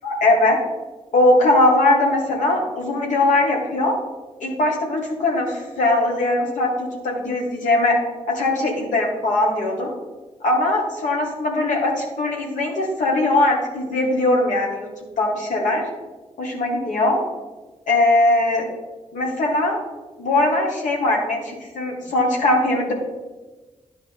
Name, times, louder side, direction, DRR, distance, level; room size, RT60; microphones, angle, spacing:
voice 1, 0.0-0.6 1.1-4.0 4.4-8.0 8.3-9.9 10.4-14.9 15.2-15.8 16.4-17.2 17.9-18.7 19.1-19.8 20.2-22.9, left 2 dB, 80° left, -1 dB, 1.8 m, -20 dB
11.0 x 4.9 x 3.6 m, 1.2 s
supercardioid pair, 45°, 13 cm